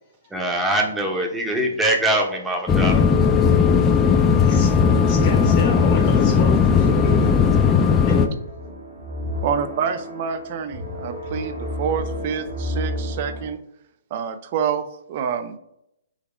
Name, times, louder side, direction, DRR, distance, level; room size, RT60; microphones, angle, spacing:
voice 1, 0.3-3.0, right 1 dB, 5° right, 1 dB, 0.9 m, -22 dB
sound 1, 2.7-8.3, left 6 dB, 15° left, 0.5 m, -17 dB
voice 2, 3.7-7.3 8.1-8.2, left 4 dB, 40° left, 1 dB, 0.9 m, -33 dB
sound 2, 4.0-13.5, equal, 70° right, 1.3 m, -32 dB
voice 3, 9.4-13.6 14.1-15.6, right 7 dB, 45° right, 10 dB, 0.5 m, -27 dB
4.0 x 3.0 x 4.3 m, 0.78 s
hypercardioid pair, 135°, 0 cm